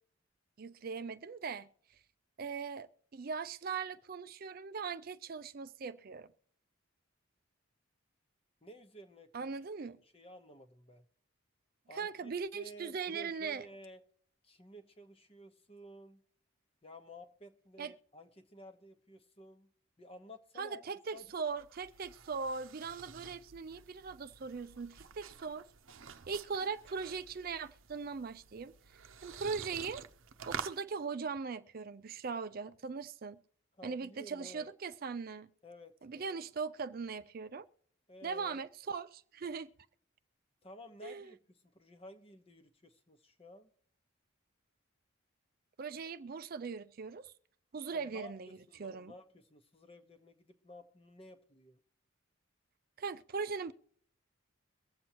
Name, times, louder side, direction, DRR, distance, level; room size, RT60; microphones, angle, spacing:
voice 1, 0.6-1.7 2.4-6.3 9.3-10.0 11.9-13.7 17.8-17.9 20.6-25.7 26.3-28.7 29.2-30.0 30.5-33.4 33.8-35.5 36.0-37.7 38.2-39.7 41.0-41.3 45.8-47.3 47.7-48.5 48.8-49.1 53.0-53.7, right 5 dB, 45° right, 0.4 m, -40 dB
voice 2, 8.6-9.5 10.0-11.1 11.9-14.0 14.4-16.2 16.8-19.7 20.0-21.3 33.7-34.7 35.6-36.4 38.1-38.6 40.6-43.7 47.9-51.8, equal, 25° left, 1.0 m, -54 dB
sound 1, 21.2-30.8, right 6 dB, 70° right, 0.8 m, -49 dB
23.5 x 7.8 x 3.0 m
head